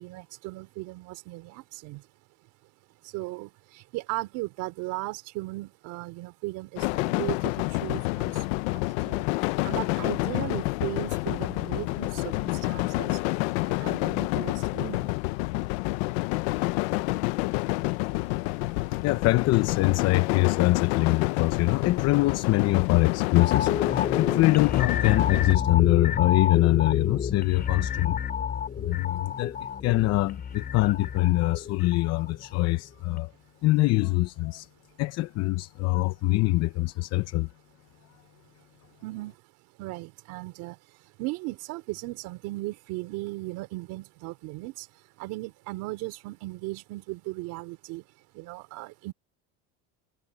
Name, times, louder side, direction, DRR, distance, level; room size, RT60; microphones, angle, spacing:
voice 1, 0.0-2.0 3.0-8.5 9.0-9.2 9.6-13.2 13.7-15.1 39.0-39.3 39.8-40.8 41.2-44.9 45.2-48.0 48.4-49.1, right 21 dB, 65° right, 3.8 m, -36 dB
sound 1, 6.8-25.5, left 22 dB, 85° left, 0.9 m, -28 dB
voice 2, 18.9-28.2 28.8-33.3 33.6-34.7 35.0-37.5, left 20 dB, 50° left, 0.8 m, -24 dB
sound 2, 23.4-32.7 33.1-33.2, left 8 dB, 30° left, 3.9 m, -30 dB
cardioid pair, 130°, 33 cm